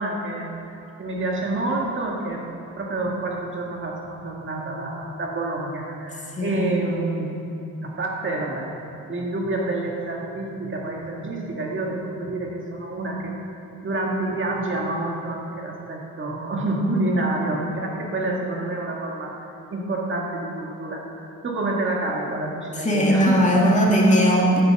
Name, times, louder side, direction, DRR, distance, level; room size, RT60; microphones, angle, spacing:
voice 1, 0.0-2.5 2.8-7.5 7.8-8.8 9.1-13.3 13.8-23.8, right 2 dB, 40° right, -1 dB, 1.8 m, -28 dB
voice 2, 6.3-6.7 22.8-24.6, equal, 25° left, -3 dB, 2.3 m, -18 dB
10.5 x 9.5 x 7.6 m, 2.7 s
cardioid pair, 125°, 31 cm